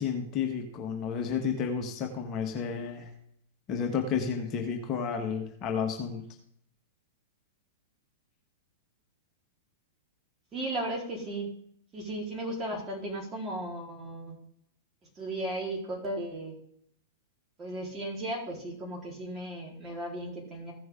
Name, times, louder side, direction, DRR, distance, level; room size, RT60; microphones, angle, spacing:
voice 1, 0.0-3.1 3.7-6.2, left 6 dB, 35° left, 2 dB, 1.5 m, -31 dB
voice 2, 10.5-11.5 11.9-14.4 15.2-16.6 17.6-20.7, right 1 dB, 25° right, -2 dB, 3.9 m, -35 dB
15.5 x 6.1 x 3.7 m, 0.68 s
figure-of-eight pair, 105°, 0 cm